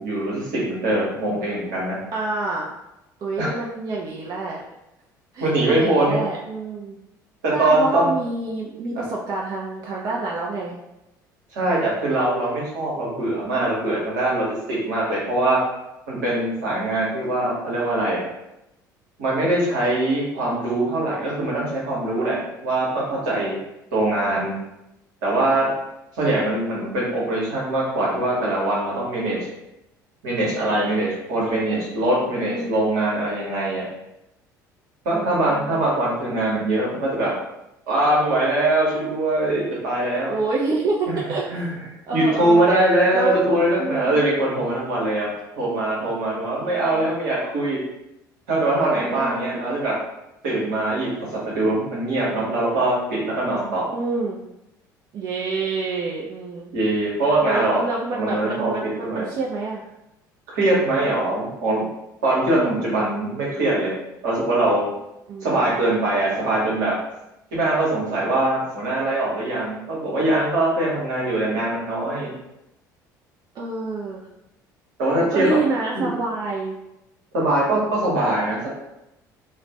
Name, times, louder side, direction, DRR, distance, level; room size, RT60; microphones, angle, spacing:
voice 1, 0.0-2.0 3.4-3.6 5.4-6.2 7.4-8.2 8.9-9.0 11.5-15.6 16.1-18.2 19.2-23.6 23.9-24.5 25.2-25.7 26.2-29.5 30.2-33.9 35.0-37.3 37.9-40.4 41.1-41.2 41.5-41.7 42.1-45.3 45.6-47.8 48.5-50.0 50.4-53.9 56.7-57.8 58.1-58.7 59.0-59.3 60.5-61.8 62.2-63.9 64.2-64.8 65.4-66.9 67.5-72.3 75.0-75.4 75.9-76.1 77.3-78.7, right 1 dB, 65° right, -5 dB, 1.0 m, -22 dB
voice 2, 2.1-2.7 3.2-4.6 5.3-7.0 7.5-10.8 24.1-24.6 32.4-32.9 35.1-35.9 40.3-41.5 42.1-42.7 43.1-43.4 43.8-44.2 46.6-47.1 49.0-49.8 53.9-54.4 55.1-56.7 57.4-59.9 62.4-62.9 65.3-65.8 73.6-74.3 75.3-76.8, right 3 dB, 40° right, -3 dB, 0.4 m, -28 dB
2.4 x 2.1 x 3.3 m, 0.89 s
figure-of-eight pair, 55°, 10 cm